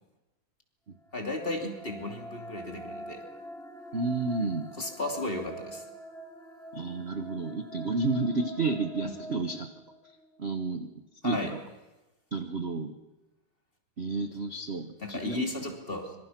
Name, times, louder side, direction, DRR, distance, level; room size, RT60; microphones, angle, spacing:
sound 1, 1.0-10.2, equal, ahead, 2.6 m, -45 dB
voice 1, 1.1-3.2 4.7-5.8 9.0-9.2 11.2-11.5 15.0-16.2, left 2 dB, 25° left, 3 dB, 3.1 m, -34 dB
voice 2, 3.9-4.7 6.7-9.7 10.4-10.9 11.2-11.6 12.3-13.0 14.0-15.5, right 3 dB, 40° right, 8 dB, 1.1 m, -31 dB
25.5 x 25.0 x 6.0 m, 1.1 s
omnidirectional pair, 2.4 m